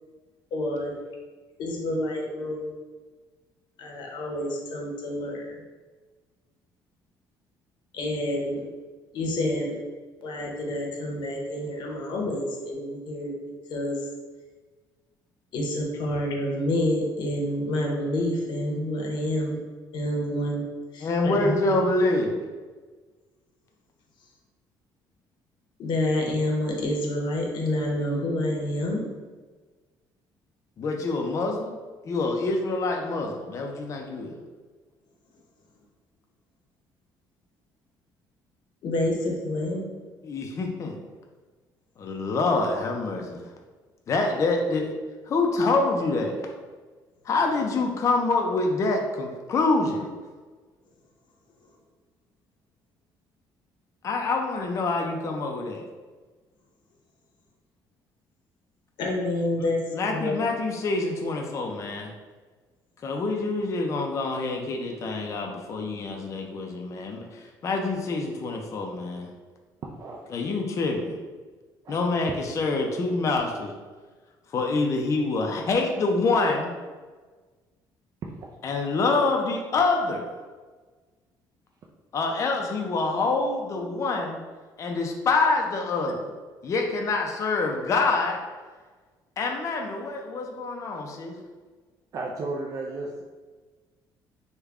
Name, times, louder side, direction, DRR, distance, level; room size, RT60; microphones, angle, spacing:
voice 1, 0.5-0.9 1.6-2.8 3.8-5.6 7.9-8.7 9.1-9.8 10.2-13.3 13.7-14.0 15.5-19.6 19.9-20.6 20.9-21.6 25.8-29.1 38.8-39.8 59.0-60.4, left 1 dB, 65° left, 0 dB, 0.8 m, -28 dB
voice 2, 21.0-22.4 30.8-31.8 32.0-34.4 40.2-41.0 42.0-43.5 44.1-44.9 45.3-46.4 47.2-50.1 54.0-55.8 59.6-62.1 63.0-69.3 70.3-71.2 71.9-73.7 74.5-76.7 78.6-80.3 82.1-84.4 84.8-86.3 86.6-88.4 89.4-91.4, left 3 dB, 35° left, 1 dB, 0.4 m, -26 dB
voice 3, 69.8-70.2 71.8-72.0 92.1-93.2, right 2 dB, 40° right, -1 dB, 0.4 m, -33 dB
3.4 x 2.2 x 3.5 m, 1.4 s
cardioid pair, 125°, 9 cm